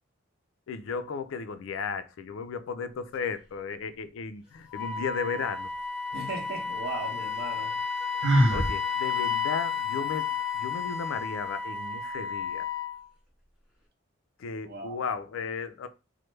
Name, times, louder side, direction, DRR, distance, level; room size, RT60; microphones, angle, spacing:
voice 1, 0.7-5.7 8.5-10.3 10.5-12.7 14.4-15.9, left 5 dB, 75° left, 0.4 m, -35 dB
Wind instrument woodwind instrument, 4.7-13.0, left 6 dB, 5° right, 0.9 m, -32 dB
voice 2, 6.1-7.8 14.6-15.0, right 3 dB, 50° right, 0.8 m, -37 dB
Sigh, 8.2-8.7, right 1 dB, 80° right, 0.6 m, -21 dB
3.1 x 2.1 x 3.2 m
head